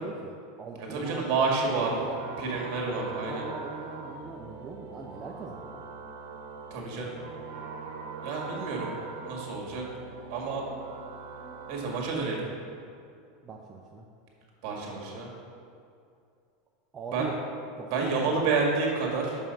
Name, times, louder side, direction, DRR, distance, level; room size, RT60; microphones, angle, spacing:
voice 1, 0.0-2.2 3.0-5.8 13.4-14.1 16.9-17.3 17.8-18.5, right 4 dB, 25° right, -1 dB, 0.6 m, -40 dB
voice 2, 0.8-1.9 2.4-3.4 6.7-7.1 8.2-8.9 9.3-9.8 10.3-10.7 11.7-12.5 14.6-15.3 17.1-17.3 17.9-19.4, right 4 dB, 55° right, -1 dB, 1.8 m, -29 dB
sound 1, 1.5-12.2, right 4 dB, 80° right, 1.0 m, -42 dB
6.1 x 5.5 x 5.5 m, 2.4 s
supercardioid pair, 130°, 0 cm